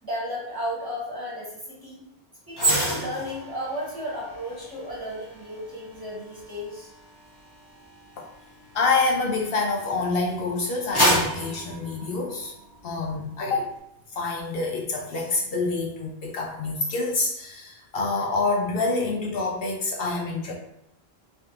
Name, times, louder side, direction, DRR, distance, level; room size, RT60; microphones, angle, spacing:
voice 1, 0.0-2.0 2.5-6.9, equal, 20° right, -7 dB, 1.3 m, -34 dB
sound 1, 2.5-9.9 10.4-12.8 13.1-13.4, right 1 dB, 25° left, 1.0 m, -29 dB
voice 2, 8.7-12.5 12.8-13.7 14.1-20.5, left 3 dB, 70° left, 0 dB, 0.7 m, -27 dB
3.4 x 3.1 x 2.8 m, 0.79 s
omnidirectional pair, 1.1 m